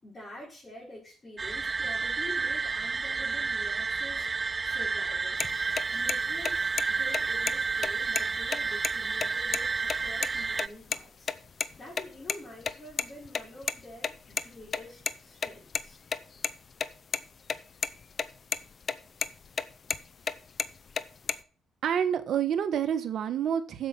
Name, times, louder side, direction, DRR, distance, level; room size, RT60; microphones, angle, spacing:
voice 1, 0.0-5.6 5.9-11.3 11.8-16.0, left 1 dB, 30° left, -6 dB, 5.1 m, -47 dB
sound 1, 1.4-10.7, right 4 dB, 30° right, 0.4 m, -30 dB
sound 2, 5.4-5.5 5.8-5.9 6.1-6.2 6.5-6.8 7.1-7.2 7.5-7.6 7.8-8.9 9.2-9.3 9.5-9.6 9.9-10.3 10.6-11.0 11.3-12.4 12.6-15.1 15.4-17.2 17.5-17.6 17.8-18.3 18.5-18.9 19.2-20.3 20.6-21.3, left 5 dB, 45° left, 0.7 m, -30 dB
voice 2, 21.8-23.9, right 8 dB, 65° right, 7 dB, 1.4 m, -28 dB
8.1 x 7.3 x 7.4 m, 0.41 s
cardioid pair, 90°, 0 cm